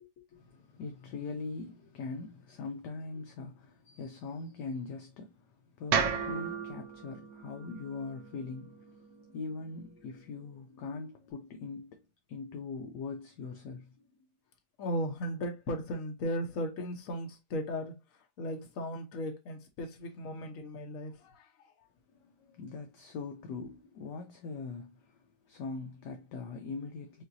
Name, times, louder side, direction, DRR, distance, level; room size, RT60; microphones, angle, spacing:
voice 1, 0.3-14.0 22.1-27.2, left 4 dB, 70° left, 1.1 m, -42 dB
sound 1, 5.9-10.1, right 6 dB, 75° right, 1.2 m, -35 dB
voice 2, 14.8-21.7, equal, 50° left, 1.3 m, -37 dB
5.7 x 2.5 x 2.6 m
omnidirectional pair, 2.1 m